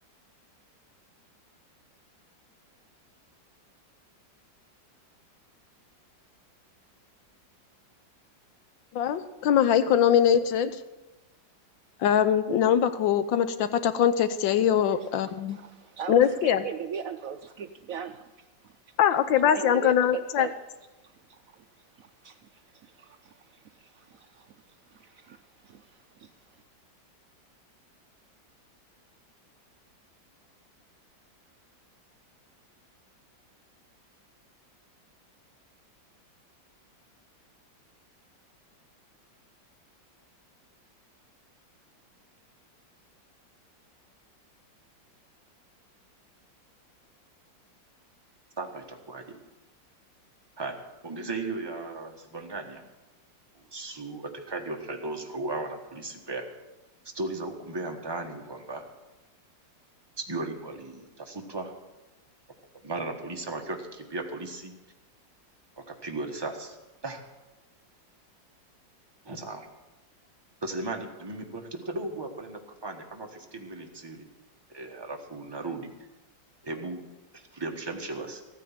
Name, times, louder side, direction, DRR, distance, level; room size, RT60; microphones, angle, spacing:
voice 1, 8.9-10.7 12.0-15.6 16.1-16.6 19.0-20.5, left 9 dB, 85° left, 12 dB, 1.5 m, -22 dB
voice 2, 15.2-18.3 18.6-18.7 19.4-20.5 21.3-21.4 22.0-24.5 24.9-25.9 26.2-26.3, right 7 dB, 70° right, 8 dB, 0.8 m, -39 dB
voice 3, 48.6-49.4 50.6-52.8 53.7-56.5 57.1-58.8 60.2-61.7 62.8-64.7 65.8-66.8 67.0-67.2 69.2-69.7 70.6-74.3 74.7-75.9 76.6-77.1 77.3-78.4, right 2 dB, 15° right, 2 dB, 1.3 m, -36 dB
14.5 x 9.3 x 7.3 m, 1.1 s
omnidirectional pair, 2.0 m